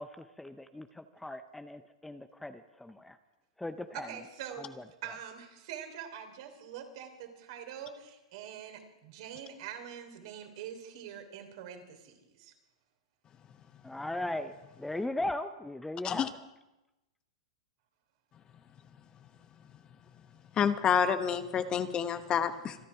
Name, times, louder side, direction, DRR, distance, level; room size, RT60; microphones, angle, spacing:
voice 1, 0.0-3.2 3.6-4.1 4.6-4.8 13.8-16.5, left 1 dB, 5° left, 10 dB, 0.6 m, -38 dB
voice 2, 3.9-4.6 5.0-12.5, right 9 dB, 60° right, 6 dB, 3.2 m, -44 dB
voice 3, 20.6-22.8, left 8 dB, 25° left, 10 dB, 1.0 m, -28 dB
26.0 x 10.5 x 4.9 m, 0.98 s
hypercardioid pair, 115°, 3 cm